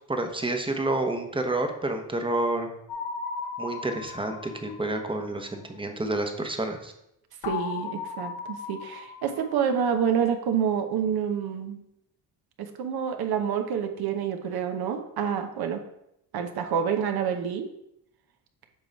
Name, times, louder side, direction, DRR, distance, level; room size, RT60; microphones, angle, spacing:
voice 1, 0.1-2.7 3.6-6.9, right 2 dB, 15° right, 5 dB, 0.9 m, -29 dB
sound 1, 2.9-5.8 7.4-10.3, left 5 dB, 70° left, 1.0 m, -37 dB
voice 2, 7.4-11.8 12.6-15.8 16.3-17.7, right 7 dB, 65° right, 5 dB, 0.9 m, -28 dB
7.4 x 3.1 x 5.2 m, 0.81 s
cardioid pair, 90°, 40 cm